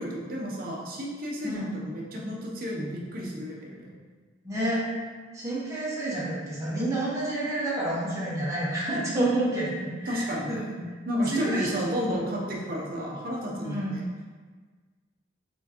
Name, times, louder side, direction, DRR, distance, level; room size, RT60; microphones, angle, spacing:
voice 1, 0.0-3.9 10.1-14.1, equal, 50° right, -2 dB, 0.7 m, -32 dB
voice 2, 4.4-4.8 5.3-10.6 11.3-12.0 13.6-14.0, right 1 dB, 15° right, -8 dB, 1.1 m, -29 dB
4.3 x 3.5 x 2.9 m, 1.5 s
head